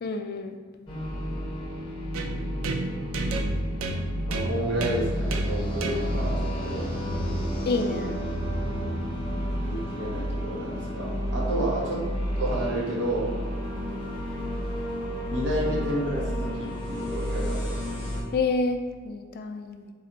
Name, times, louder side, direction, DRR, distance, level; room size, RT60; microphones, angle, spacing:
voice 1, 0.0-0.6 7.6-8.2 18.3-19.9, left 3 dB, 50° left, 5 dB, 0.3 m, -28 dB
sound 1, 0.9-18.2, equal, 25° left, 0.9 m, -31 dB
sound 2, 2.1-9.9, right 2 dB, 85° right, 0.4 m, -34 dB
voice 2, 4.3-6.8 9.6-12.0 12.3-13.3 15.3-17.7, right 1 dB, 60° right, -4 dB, 1.1 m, -30 dB
4.0 x 2.5 x 4.0 m, 1.5 s
head